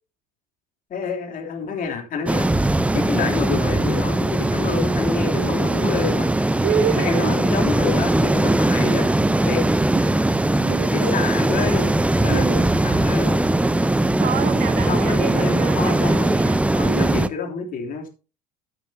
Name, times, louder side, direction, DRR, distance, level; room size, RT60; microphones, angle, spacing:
voice 1, 0.9-2.5 2.9-6.3 6.9-9.1 9.4-9.6 10.9-11.9 12.2-12.6 12.8-13.4 14.7-16.4 16.7-18.1, left 5 dB, 40° left, 3.3 m, -28 dB
sound 1, 2.3-17.3, right 1 dB, 5° right, 0.7 m, -20 dB
voice 2, 6.6-7.4 9.9-10.0 10.6-11.3 12.2-12.7 14.0-17.2, right 8 dB, 40° right, 1.3 m, -28 dB
15.0 x 8.8 x 2.8 m
figure-of-eight pair, 65°, 21 cm